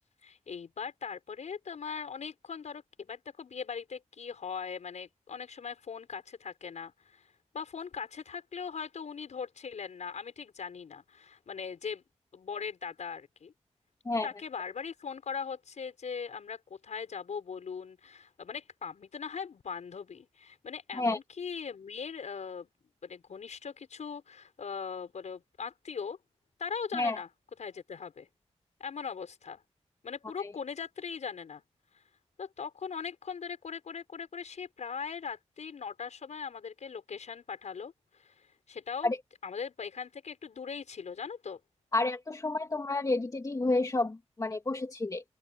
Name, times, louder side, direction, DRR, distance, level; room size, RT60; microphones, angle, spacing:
voice 1, 0.2-7.3 7.5-12.0 12.3-13.5 14.2-22.7 23.0-26.2 26.6-27.3 27.6-28.3 28.8-29.6 30.0-31.6 32.4-39.1 39.4-41.6, left 6 dB, 90° left, 5.8 m, -40 dB
voice 2, 41.9-45.2, left 2 dB, 30° left, 2.8 m, -30 dB
open air
wide cardioid pair, 160°, 12 cm